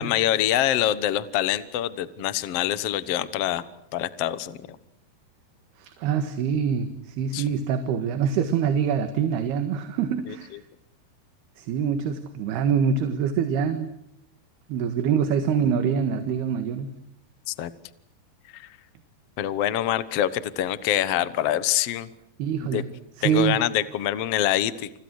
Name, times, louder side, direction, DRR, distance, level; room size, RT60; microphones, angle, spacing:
voice 1, 0.0-3.7 3.9-4.8 7.3-7.4 10.3-10.4 17.5-17.7 18.5-18.7 19.4-22.1 22.6-22.8 23.2-24.9, left 12 dB, 75° left, 14 dB, 1.4 m, -25 dB
voice 2, 5.8-10.6 11.6-13.9 14.7-16.9 22.4-22.9 23.2-23.6, right 7 dB, 75° right, 8 dB, 3.6 m, -25 dB
29.5 x 29.0 x 6.4 m, 0.77 s
omnidirectional pair, 4.7 m